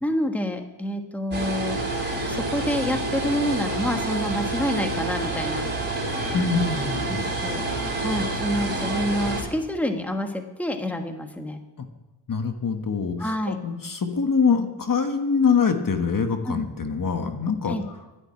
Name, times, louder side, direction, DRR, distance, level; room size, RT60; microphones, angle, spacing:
voice 1, 0.0-1.8 2.3-5.6 7.1-7.6 8.0-11.6 13.2-13.6 16.4-16.6 17.7-17.8, left 1 dB, 5° left, 5 dB, 1.4 m, -28 dB
sound 1, 1.3-9.4, right 2 dB, 25° right, 3.9 m, -28 dB
voice 2, 6.3-7.3 11.8-11.9 12.3-17.8, left 5 dB, 45° left, 6 dB, 1.5 m, -24 dB
12.0 x 10.5 x 8.7 m, 1.1 s
wide cardioid pair, 90°, 44 cm